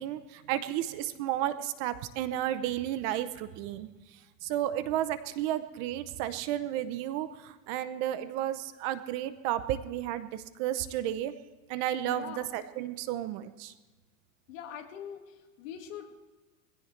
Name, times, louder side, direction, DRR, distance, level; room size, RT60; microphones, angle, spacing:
voice 1, 0.0-3.9 4.4-11.3 11.7-13.7, right 12 dB, 40° right, 13 dB, 0.7 m, -32 dB
voice 2, 12.0-12.5 14.5-16.2, left 9 dB, 65° left, 4 dB, 2.1 m, -43 dB
21.0 x 16.0 x 3.2 m, 1.3 s
supercardioid pair, 150°, 43 cm